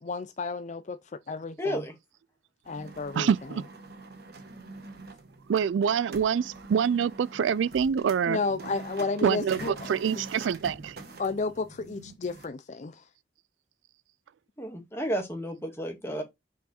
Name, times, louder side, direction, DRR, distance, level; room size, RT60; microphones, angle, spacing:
voice 1, 0.0-1.0 1.3-1.8 2.7-3.3 8.3-9.7 11.2-13.0, left 4 dB, 40° left, 0.4 m, -32 dB
voice 2, 1.6-1.9 14.6-16.2, equal, 15° left, 1.9 m, -32 dB
sound 1, 2.6-12.5, right 3 dB, 60° right, 1.2 m, -45 dB
voice 3, 3.1-3.6 5.5-8.4 9.2-11.0, right 7 dB, 85° right, 0.3 m, -26 dB
5.9 x 4.6 x 4.2 m
head